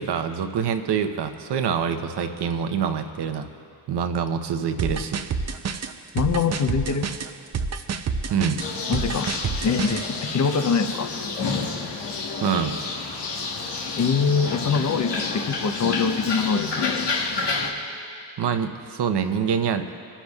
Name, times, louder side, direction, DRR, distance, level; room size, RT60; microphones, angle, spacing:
voice 1, 0.0-3.5 3.9-5.2 8.3-8.6 12.4-12.8 18.4-19.9, right 7 dB, 65° right, 7 dB, 0.9 m, -25 dB
sound 1, 4.8-10.1, right 5 dB, 40° right, 0.6 m, -28 dB
voice 2, 6.1-7.1 8.9-9.3 9.6-11.1 14.0-16.9, left 5 dB, 40° left, 8 dB, 0.8 m, -23 dB
sound 2, 8.6-17.7, left 4 dB, 70° left, 1.4 m, -29 dB
27.0 x 10.0 x 2.4 m, 2.4 s
cardioid pair, 75°, 43 cm